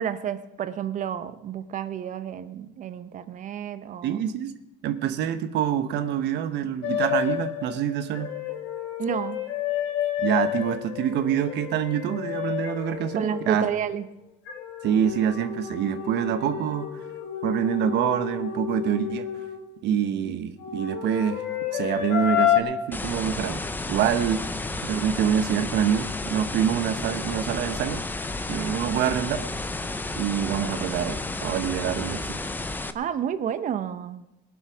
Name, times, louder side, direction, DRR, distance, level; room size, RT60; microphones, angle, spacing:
voice 1, 0.0-4.2 9.0-9.4 13.1-14.1 32.9-34.2, right 9 dB, 40° right, 12 dB, 0.9 m, -30 dB
voice 2, 4.0-4.5 4.8-8.3 10.2-13.7 14.8-16.9 17.4-19.3 19.8-21.4 21.7-23.6 23.9-24.4 24.8-28.1 28.5-29.4 30.2-32.4, right 9 dB, 65° right, 9 dB, 1.1 m, -26 dB
sound 1, 6.8-14.0 14.5-19.7 20.6-22.6, left 10 dB, 90° left, 2.4 m, -30 dB
sound 2, 22.9-32.9, left 2 dB, 10° left, 0.6 m, -32 dB
20.5 x 7.3 x 6.2 m, 0.92 s
cardioid pair, 155°, 19 cm